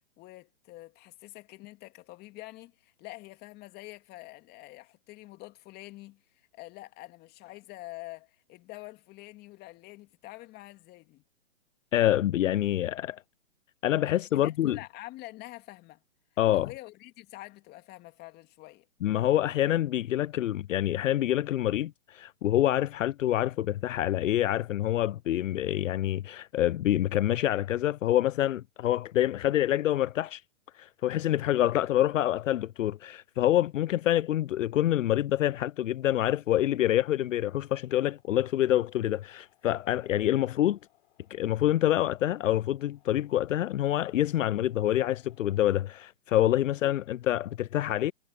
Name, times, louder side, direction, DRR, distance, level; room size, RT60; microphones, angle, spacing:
voice 1, 0.2-11.2 14.3-16.0 16.5-18.9 46.7-46.8, left 19 dB, 25° left, 2.4 m, -46 dB
voice 2, 11.9-13.2 13.8-14.8 16.4-16.7 19.0-30.4 30.8-40.8 41.3-48.1, left 13 dB, 80° left, 0.5 m, -26 dB
sound 1, 37.2-46.1, left 18 dB, 45° left, 6.7 m, -69 dB
hypercardioid pair, 140°, 38 cm